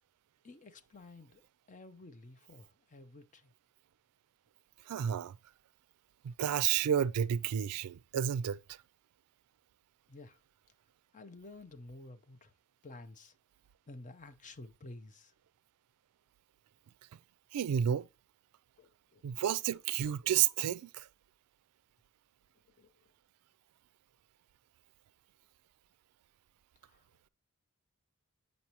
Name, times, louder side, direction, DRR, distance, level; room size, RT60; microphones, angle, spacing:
voice 1, 0.4-1.4 1.7-3.5 10.1-10.4 11.1-12.5 12.8-13.3 13.9-15.3 18.8-19.2 22.8-22.9, left 2 dB, 35° left, 0.6 m, -51 dB
voice 2, 4.9-5.4 6.2-8.6 17.5-18.1 19.2-21.1, right 9 dB, 85° right, 0.3 m, -31 dB
8.2 x 5.3 x 2.9 m
head